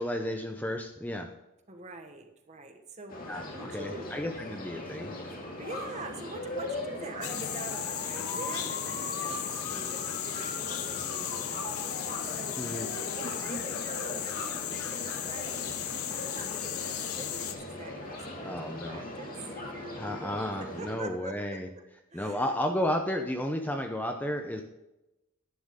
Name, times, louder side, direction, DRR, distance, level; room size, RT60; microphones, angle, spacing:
voice 1, 0.0-1.3 3.3-5.3 12.6-12.9 18.4-19.0 20.0-21.7 22.1-24.6, left 1 dB, 10° left, 4 dB, 0.7 m, -33 dB
voice 2, 1.7-4.1 5.6-18.5 18.9-21.6 22.1-22.5, right 2 dB, 30° right, 5 dB, 1.3 m, -44 dB
sound 1, 3.1-21.0, left 2 dB, 40° left, 2.2 m, -39 dB
sound 2, 7.2-17.5, left 10 dB, 85° left, 0.9 m, -35 dB
11.5 x 10.0 x 3.7 m, 0.95 s
head